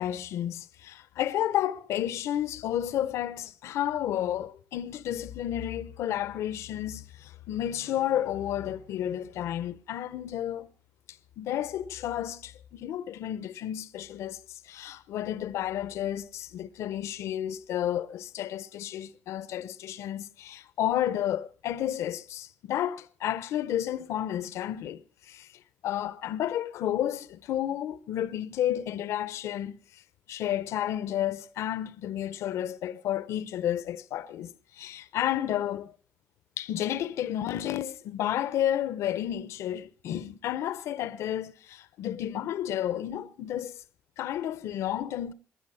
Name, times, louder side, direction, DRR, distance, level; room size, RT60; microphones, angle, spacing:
voice 1, 0.0-10.7 11.4-25.5 25.8-29.8 30.3-35.9 36.6-43.8 44.2-45.3, left 11 dB, 75° left, 0.8 m, -31 dB
20.5 x 10.5 x 5.6 m
cardioid pair, 105°, 5 cm